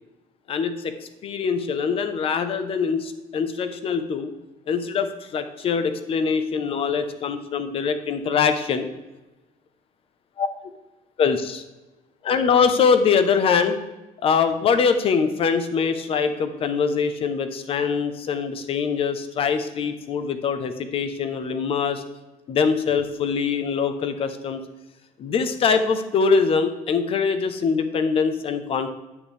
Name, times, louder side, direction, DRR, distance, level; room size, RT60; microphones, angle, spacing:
voice 1, 0.5-0.9 1.2-4.3 4.7-8.9 10.4-10.5 11.2-11.6 12.2-13.8 14.2-22.0 22.5-24.6 25.2-28.9, left 5 dB, 35° left, 9 dB, 0.8 m, -23 dB
10.0 x 8.3 x 3.3 m, 1.1 s
cardioid pair, 155°, 16 cm